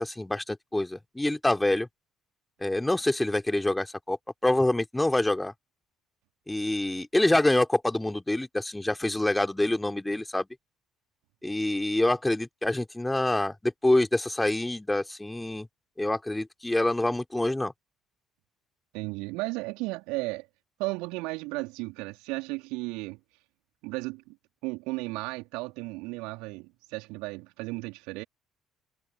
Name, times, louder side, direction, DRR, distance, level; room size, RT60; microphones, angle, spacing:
voice 1, 0.0-1.9 2.6-4.2 4.4-5.5 6.5-10.5 11.4-15.7 16.0-17.7, left 1 dB, 10° left, 3.6 m, -26 dB
voice 2, 18.9-20.5 20.8-23.2 23.8-24.4 24.6-28.2, right 25 dB, 65° right, 3.4 m, -34 dB
figure-of-eight pair, 50°, 0 cm